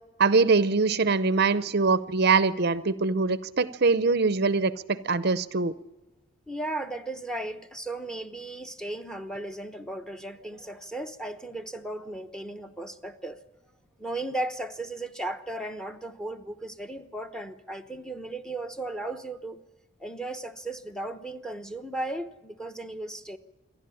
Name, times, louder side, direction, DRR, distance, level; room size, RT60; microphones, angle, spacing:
voice 1, 0.2-5.7, right 4 dB, 50° right, 0.7 m, -23 dB
voice 2, 6.5-13.4 14.0-19.6 20.0-23.4, right 2 dB, 5° left, 1.0 m, -36 dB
27.0 x 12.0 x 10.0 m
head